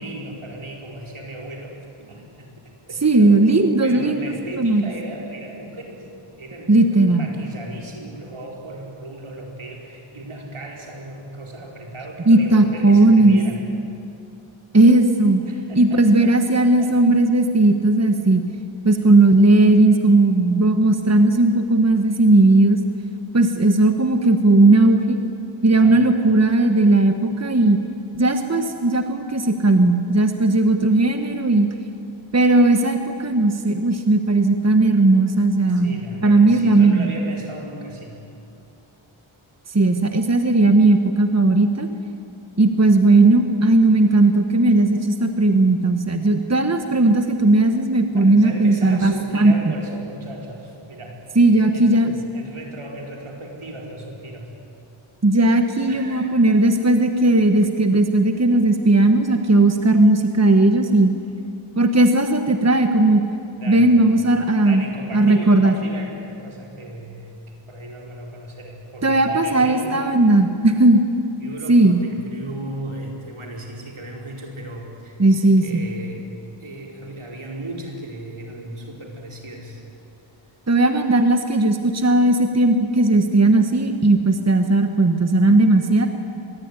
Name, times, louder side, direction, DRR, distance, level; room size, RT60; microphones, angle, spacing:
voice 1, 0.0-3.5 3.8-6.0 6.4-13.6 15.4-17.0 18.9-19.1 25.8-26.0 35.7-38.2 48.1-51.2 51.5-54.5 55.9-56.3 63.6-64.0 64.6-70.0 71.4-76.3 76.6-79.8, right 2 dB, 75° right, 0 dB, 5.1 m, -36 dB
voice 2, 3.0-4.2 4.6-4.8 6.7-7.3 12.3-13.4 14.7-15.4 15.7-18.4 18.8-22.8 23.3-25.2 25.6-27.8 28.1-31.7 32.3-35.9 36.2-37.1 39.7-41.9 42.6-49.7 51.3-52.2 55.2-61.1 61.8-63.2 63.7-64.8 65.1-65.7 69.0-71.0 71.7-72.0 75.2-75.8 80.7-86.1, right 2 dB, 30° right, 6 dB, 1.4 m, -16 dB
25.5 x 21.5 x 9.9 m, 2.5 s
wide cardioid pair, 80°, 50 cm